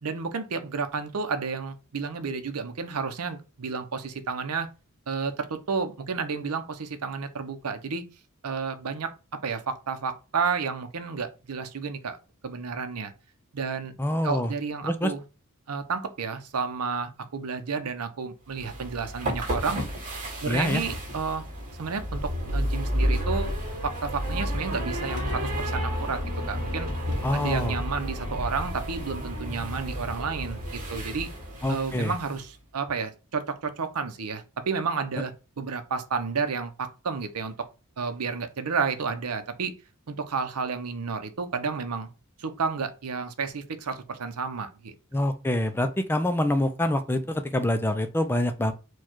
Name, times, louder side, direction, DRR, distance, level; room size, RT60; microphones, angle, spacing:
voice 1, 0.0-4.7 5.1-8.0 8.4-9.1 9.4-12.2 12.4-13.1 13.5-13.9 14.2-15.2 15.7-19.8 20.4-21.5 21.8-23.5 23.8-26.2 26.5-26.9 27.3-31.3 31.7-37.5 38.0-39.7 40.1-42.1 42.4-44.9, right 5 dB, 85° right, 0.7 m, -31 dB
voice 2, 14.0-14.5 14.8-15.1 20.5-20.8 27.2-27.8 31.6-32.1 45.1-48.7, left 1 dB, 10° left, 0.4 m, -26 dB
sound 1, 18.5-32.4, equal, 40° right, 1.8 m, -31 dB
4.5 x 2.3 x 4.4 m
head